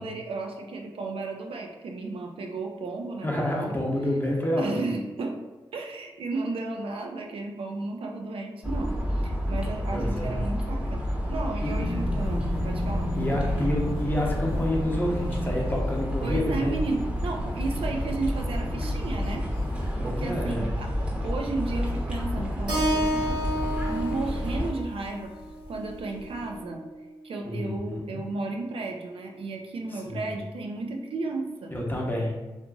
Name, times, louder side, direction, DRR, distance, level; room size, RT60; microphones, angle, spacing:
voice 1, 0.0-3.8 4.6-5.4 5.7-11.0 11.3-13.1 16.2-19.5 20.0-23.4 23.9-25.4 25.7-26.8 27.2-31.7, right 3 dB, 75° right, 2 dB, 0.4 m, -33 dB
voice 2, 3.2-4.9 9.9-10.4 11.6-11.7 13.1-16.8 20.0-20.7 27.4-28.2 29.9-30.3 31.7-32.3, left 1 dB, 20° left, -2 dB, 0.8 m, -29 dB
sound 1, 8.6-24.7, equal, 10° right, 0.8 m, -30 dB
sound 2, 11.7-26.6, left 1 dB, 75° left, 0.4 m, -36 dB
Keyboard (musical), 22.7-26.9, equal, 55° right, 0.9 m, -31 dB
2.8 x 2.5 x 2.3 m, 1.1 s
cardioid pair, 45°, 9 cm